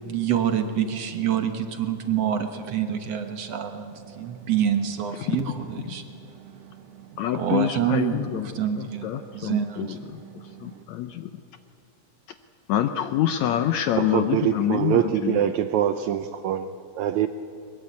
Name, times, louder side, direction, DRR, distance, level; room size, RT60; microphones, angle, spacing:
voice 1, 0.0-10.8, right 9 dB, 60° right, 7 dB, 1.9 m, -28 dB
voice 2, 7.2-8.5 8.8-11.3 12.7-15.4, left 11 dB, 75° left, 9 dB, 1.6 m, -27 dB
voice 3, 14.0-17.3, right 10 dB, 80° right, 10 dB, 1.7 m, -24 dB
22.0 x 22.0 x 8.4 m, 2.7 s
omnidirectional pair, 3.8 m